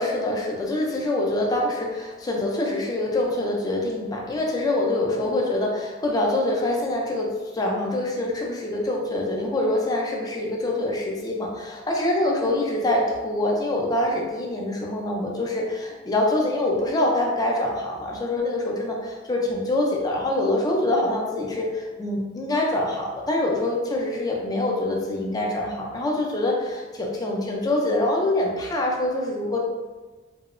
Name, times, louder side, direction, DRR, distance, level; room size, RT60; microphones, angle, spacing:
voice 1, 0.0-29.6, left 1 dB, 20° left, -1 dB, 0.3 m, -25 dB
2.7 x 2.0 x 2.4 m, 1.3 s
head